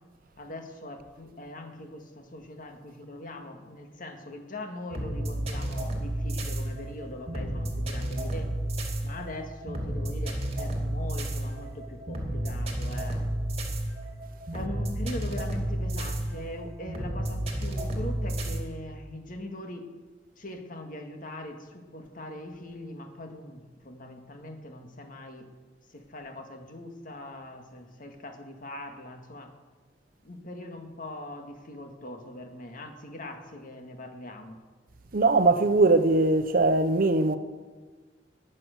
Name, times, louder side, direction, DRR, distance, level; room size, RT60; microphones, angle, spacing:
voice 1, 0.4-8.5 9.0-13.2 14.5-19.8 20.4-25.5 25.9-29.5 30.2-34.6, left 1 dB, 50° left, 1.9 m, -41 dB
sound 1, 4.9-18.6, right 1 dB, 35° right, 2.6 m, -31 dB
voice 2, 35.1-37.4, right 2 dB, 55° right, 0.8 m, -21 dB
20.5 x 7.7 x 6.6 m
head